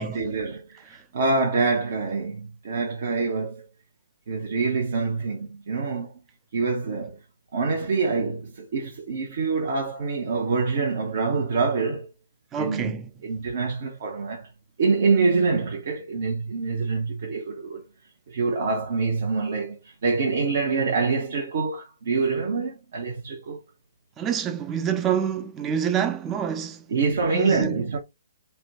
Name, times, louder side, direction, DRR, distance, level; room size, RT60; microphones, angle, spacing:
voice 1, 0.0-3.6 4.3-6.1 6.5-7.2 7.5-12.1 12.6-12.9 13.2-14.5 14.8-17.8 18.3-23.6 26.9-28.0, right 4 dB, 55° right, 0.7 m, -25 dB
voice 2, 12.5-13.1 24.2-26.9 27.3-27.8, right 8 dB, 20° right, 0.4 m, -27 dB
3.3 x 2.1 x 2.7 m
figure-of-eight pair, 125°, 0 cm